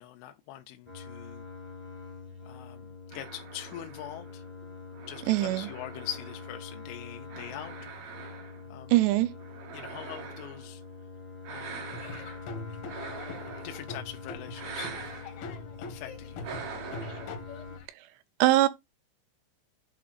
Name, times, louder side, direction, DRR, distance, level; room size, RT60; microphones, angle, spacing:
voice 1, 0.0-1.5 2.5-4.4 5.1-7.8 8.7-9.0 9.7-10.8 11.5-12.0 13.6-15.3 15.8-16.5, left 12 dB, 85° left, 3.2 m, -43 dB
sound 1, 0.9-17.8, left 5 dB, 5° right, 0.8 m, -45 dB
sound 2, 3.1-6.8 7.3-8.8 9.4-10.7 11.4-12.5 12.9-14.1 14.5-15.3 16.4-17.4, right 6 dB, 60° right, 3.2 m, -43 dB
voice 2, 5.3-5.7 8.9-9.3 18.0-18.1 18.4-18.7, right 16 dB, 80° right, 2.6 m, -22 dB
Laughter / Drum, 11.9-17.9, left 3 dB, 65° left, 2.2 m, -43 dB
8.7 x 3.4 x 4.0 m
omnidirectional pair, 5.5 m